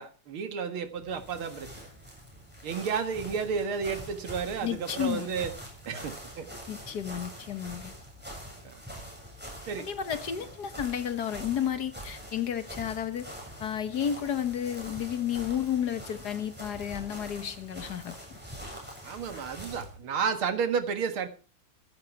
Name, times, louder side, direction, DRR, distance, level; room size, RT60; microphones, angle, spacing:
voice 1, 0.0-1.9 2.6-5.5 5.9-6.5 8.6-8.8 9.7-9.9 19.0-21.3, right 6 dB, 90° right, 2.5 m, -32 dB
sound 1, 0.9-20.0, equal, 5° right, 7.6 m, -44 dB
voice 2, 4.6-5.3 6.7-7.9 9.9-13.3 13.6-18.4, left 9 dB, 55° left, 1.6 m, -32 dB
15.5 x 13.0 x 4.7 m
omnidirectional pair, 2.3 m